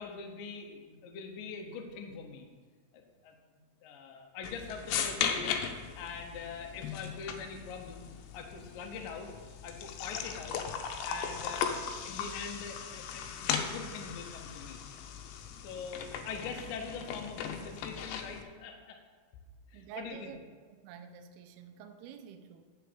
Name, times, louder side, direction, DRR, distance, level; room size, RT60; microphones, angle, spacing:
voice 1, 0.0-2.5 2.9-3.3 3.8-5.6 6.0-8.1 8.3-9.3 9.6-10.6 11.0-14.8 15.6-19.0 19.7-20.3, left 5 dB, 70° left, 3 dB, 2.3 m, -43 dB
sound 1, 4.4-18.4, left 7 dB, 85° left, 3.1 m, -38 dB
voice 2, 19.7-20.4 20.8-22.6, right 8 dB, 85° right, 6 dB, 2.4 m, -48 dB
8.3 x 7.2 x 6.8 m, 1.5 s
omnidirectional pair, 5.1 m